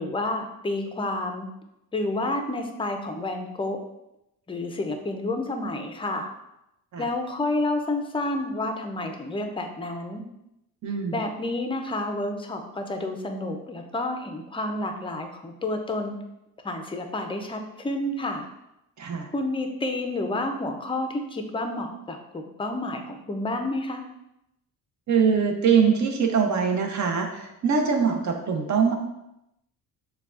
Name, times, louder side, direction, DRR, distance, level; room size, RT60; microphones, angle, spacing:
voice 1, 0.0-1.5 1.9-3.8 4.5-6.3 7.0-10.2 11.1-16.2 16.6-18.5 19.3-24.0, left 2 dB, 15° left, 5 dB, 0.5 m, -30 dB
voice 2, 10.8-11.2 19.0-19.3 25.1-28.9, right 6 dB, 45° right, 4 dB, 0.8 m, -23 dB
6.6 x 2.3 x 2.4 m, 0.87 s
cardioid pair, 85°, 39 cm